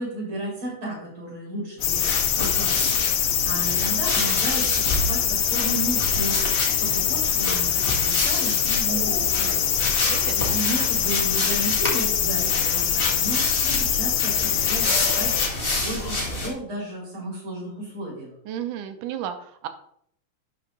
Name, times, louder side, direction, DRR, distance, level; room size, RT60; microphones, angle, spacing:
voice 1, 0.0-6.4 6.8-9.7 10.3-18.3, right 1 dB, 40° right, -3 dB, 4.8 m, -33 dB
sound 1, 1.8-15.5, left 10 dB, 75° left, 2.0 m, -24 dB
sound 2, 1.8-16.5, left 2 dB, 20° left, 1.5 m, -28 dB
voice 2, 9.9-10.6 18.5-19.7, right 10 dB, 80° right, 9 dB, 2.3 m, -33 dB
11.5 x 5.6 x 3.9 m, 0.69 s
omnidirectional pair, 3.7 m